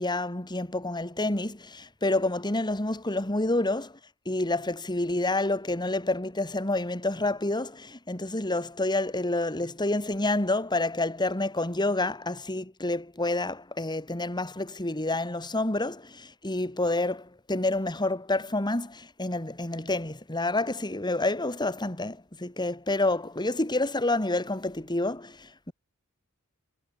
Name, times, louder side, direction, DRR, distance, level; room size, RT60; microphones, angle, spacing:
voice 1, 0.0-3.9 4.3-25.7, left 2 dB, 20° left, 2.6 m, -28 dB
head